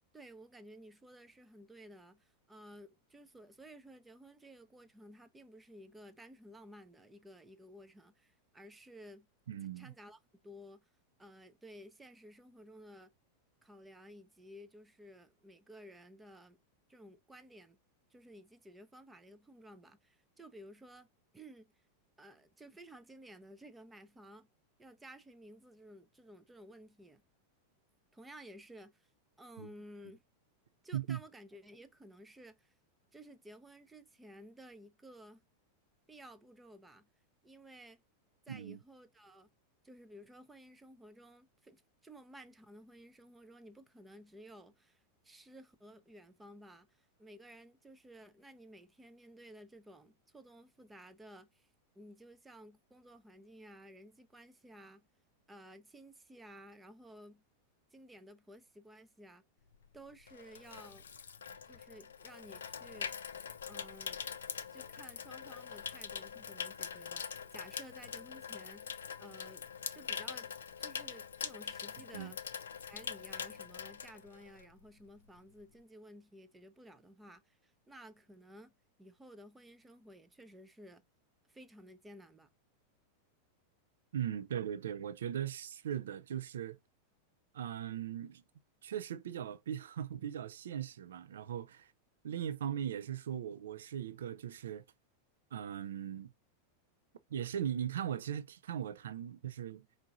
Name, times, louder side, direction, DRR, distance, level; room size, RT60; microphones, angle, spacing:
voice 1, 0.1-9.3 9.8-10.9 11.2-13.1 13.6-16.6 16.9-17.8 18.1-21.1 21.3-21.7 22.2-24.5 24.8-27.2 28.1-29.1 29.4-30.2 30.8-32.7 33.1-35.4 36.1-37.1 37.4-38.0 38.5-39.5 39.8-51.7 52.0-55.1 55.5-57.4 57.9-59.4 59.9-61.0 61.7-63.2 63.7-64.2 64.7-69.7 69.9-70.5 70.8-72.4 72.8-78.7 79.0-81.0 81.5-82.5, equal, 10° right, 0.6 m, -55 dB
voice 2, 9.5-9.9 29.6-29.7 30.9-31.2 38.5-38.8 72.1-72.3 84.1-86.8 87.5-88.4 88.8-91.9 92.2-94.8 95.5-96.3 97.3-99.9, right 9 dB, 60° right, 0.5 m, -39 dB
Water tap faucet / Sink (filling or washing), 59.7-74.8 75.1-75.4, left 7 dB, 65° left, 0.4 m, -43 dB
4.7 x 2.5 x 3.8 m
figure-of-eight pair, 90°, 0 cm